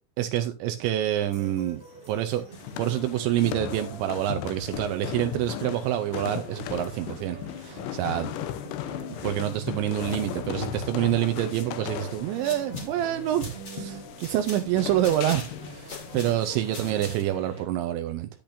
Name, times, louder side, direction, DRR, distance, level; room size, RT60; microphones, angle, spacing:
voice 1, 0.2-1.8 2.1-2.4 2.8-8.3 9.2-18.3, right 12 dB, 80° right, 2.7 m, -27 dB
sound 1, 1.2-17.6, right 1 dB, 15° left, 2.7 m, -44 dB
sound 2, 2.5-17.2, left 13 dB, 90° left, 2.4 m, -37 dB
sound 3, 12.2-17.4, left 2 dB, 45° left, 0.8 m, -44 dB
10.5 x 10.5 x 2.6 m
omnidirectional pair, 5.8 m